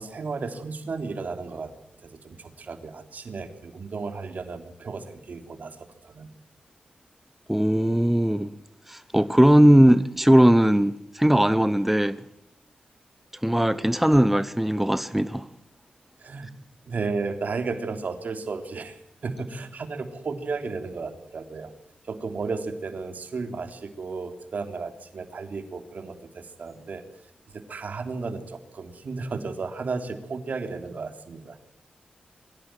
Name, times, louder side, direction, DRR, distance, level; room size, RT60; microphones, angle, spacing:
voice 1, 0.0-1.7 2.0-6.3 16.2-16.5 16.8-21.7 22.1-27.0 27.5-31.6, right 4 dB, 65° right, 3.5 m, -34 dB
voice 2, 7.5-8.5 8.9-12.2 13.4-15.5, equal, 5° right, 1.1 m, -19 dB
24.5 x 16.0 x 9.2 m
cardioid pair, 60°, 3 cm